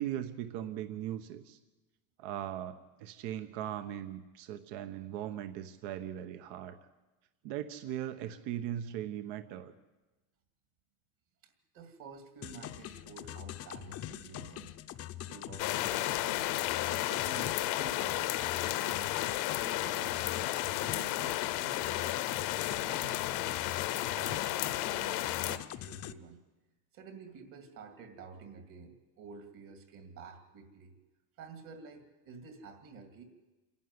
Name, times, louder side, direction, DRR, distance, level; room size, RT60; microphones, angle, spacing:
voice 1, 0.0-1.6 2.2-6.8 7.4-9.7, right 11 dB, 75° right, 9 dB, 1.3 m, -39 dB
voice 2, 11.4-14.8 15.2-18.4 18.7-22.3 22.7-26.4 26.9-31.0 31.4-33.2, right 5 dB, 55° right, 6 dB, 2.5 m, -50 dB
sound 1, 12.4-26.1, left 12 dB, 35° left, 0.7 m, -44 dB
sound 2, 15.6-25.6, left 16 dB, 70° left, 0.9 m, -33 dB
27.0 x 11.5 x 9.7 m, 1.1 s
cardioid pair, 155°, 41 cm